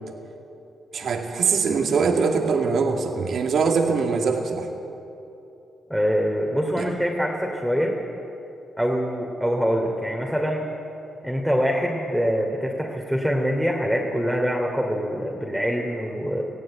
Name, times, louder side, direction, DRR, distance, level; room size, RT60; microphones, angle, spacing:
voice 1, 0.9-4.7 6.8-6.9, right 5 dB, 65° right, 3 dB, 2.4 m, -22 dB
voice 2, 5.9-8.0 8.8-10.6 11.2-16.4, equal, ahead, -1 dB, 3.0 m, -24 dB
18.5 x 15.5 x 9.0 m, 2.9 s
supercardioid pair, 50°, 0 cm